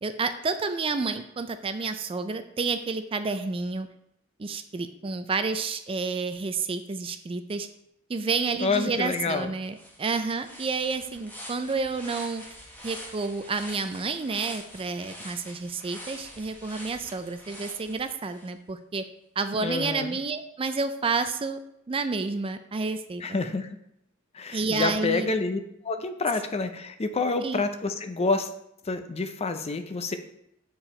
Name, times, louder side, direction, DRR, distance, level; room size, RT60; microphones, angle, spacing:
voice 1, 0.0-3.9 4.4-7.7 8.1-12.4 12.8-19.0 19.4-21.6 21.9-23.2 24.5-25.3 27.4-27.6, right 4 dB, 25° right, 9 dB, 0.4 m, -30 dB
voice 2, 8.6-9.5 19.6-20.2 23.2-23.8 24.3-25.6 25.8-28.5 28.9-30.2, left 3 dB, 30° left, 8 dB, 0.5 m, -28 dB
sound 1, 9.7-18.5, equal, 10° left, 1.2 m, -45 dB
7.0 x 4.7 x 4.3 m, 0.77 s
head